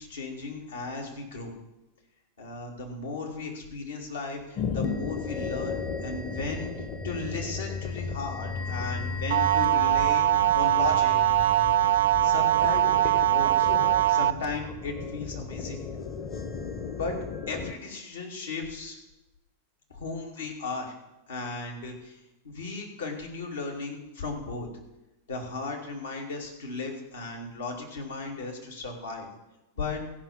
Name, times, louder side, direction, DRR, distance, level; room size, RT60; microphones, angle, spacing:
voice 1, 0.0-1.5 2.4-11.1 11.9-13.7 14.1-15.8 16.9-17.2 17.5-19.0 19.9-20.9 21.3-24.7 25.3-29.3 29.7-30.0, left 3 dB, 70° left, -1 dB, 2.7 m, -36 dB
sound 1, 4.5-17.7, left 5 dB, 35° left, 1.3 m, -35 dB
sound 2, 9.3-14.3, right 13 dB, 60° right, 0.3 m, -22 dB
15.0 x 5.9 x 7.1 m, 0.98 s
figure-of-eight pair, 90°, 0 cm